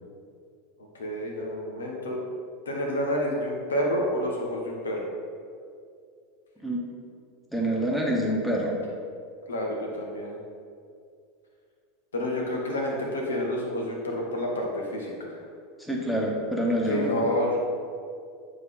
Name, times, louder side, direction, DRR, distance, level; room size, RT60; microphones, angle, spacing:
voice 1, 0.9-2.2 2.7-5.1 9.5-10.4 12.1-15.4 16.9-17.6, equal, 75° left, 0 dB, 1.1 m, -29 dB
voice 2, 7.5-8.8 15.8-17.3, equal, 5° left, -2 dB, 1.3 m, -26 dB
9.2 x 3.4 x 3.7 m, 2.3 s
figure-of-eight pair, 80°, 0 cm